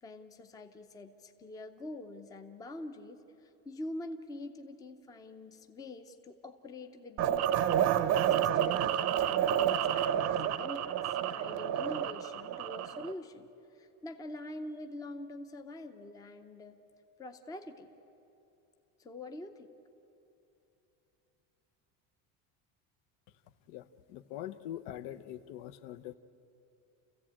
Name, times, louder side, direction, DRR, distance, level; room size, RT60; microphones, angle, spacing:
voice 1, 0.0-7.6 8.3-16.8 17.2-17.9 19.0-19.7, left 1 dB, 10° left, 7 dB, 0.6 m, -45 dB
sound 1, 7.2-13.1, right 10 dB, 40° right, 0.7 m, -29 dB
voice 2, 23.7-26.2, left 12 dB, 75° left, 11 dB, 1.0 m, -43 dB
29.0 x 15.0 x 8.7 m, 2.9 s
cardioid pair, 180°, 41 cm